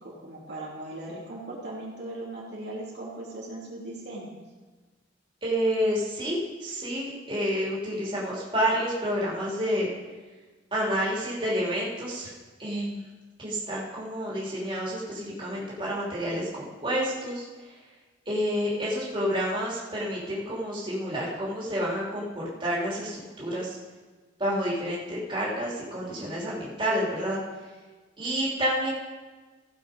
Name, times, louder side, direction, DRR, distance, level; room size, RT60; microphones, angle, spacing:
voice 1, 0.0-4.4, right 2 dB, 60° right, -5 dB, 2.8 m, -38 dB
voice 2, 5.4-9.9 10.7-12.3 12.6-13.0 13.4-17.7 18.3-23.8 24.4-27.4 28.2-28.9, equal, 25° right, -6 dB, 3.0 m, -29 dB
16.5 x 7.1 x 5.1 m, 1.3 s
head